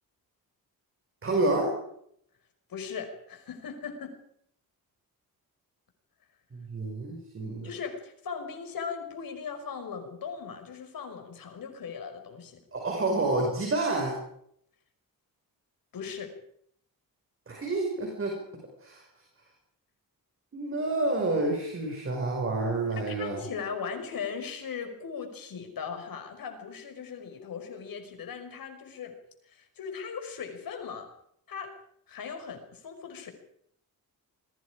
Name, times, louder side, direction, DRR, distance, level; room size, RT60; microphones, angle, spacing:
voice 1, 1.2-1.7 6.5-7.7 12.7-14.2 17.5-18.4 18.8-19.0 20.5-23.4, right 2 dB, 35° right, 1 dB, 5.9 m, -29 dB
voice 2, 2.7-4.2 7.6-12.6 15.9-16.3 23.1-29.2 29.5-31.1 31.5-31.8 32.1-33.3, left 6 dB, 70° left, 6 dB, 5.4 m, -38 dB
28.5 x 22.0 x 5.1 m, 0.70 s
wide cardioid pair, 160°, 36 cm